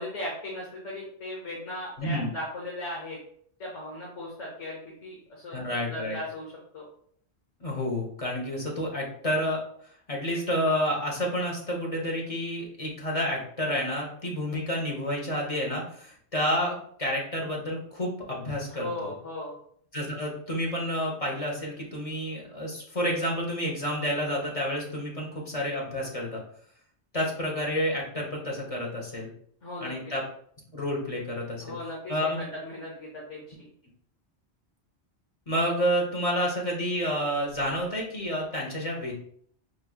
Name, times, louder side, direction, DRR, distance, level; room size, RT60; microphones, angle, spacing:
voice 1, 0.0-3.2 3.6-6.9 18.7-19.5 29.6-30.1 31.6-33.7, left 1 dB, 90° left, -4 dB, 1.4 m, -37 dB
voice 2, 2.0-2.3 5.5-6.2 7.6-9.6 10.1-19.1 19.9-26.4 27.1-29.3 29.8-30.2 30.7-31.8 32.1-32.4 35.5-39.1, equal, 30° left, -2 dB, 1.1 m, -29 dB
6.0 x 3.2 x 2.3 m, 0.62 s
omnidirectional pair, 1.2 m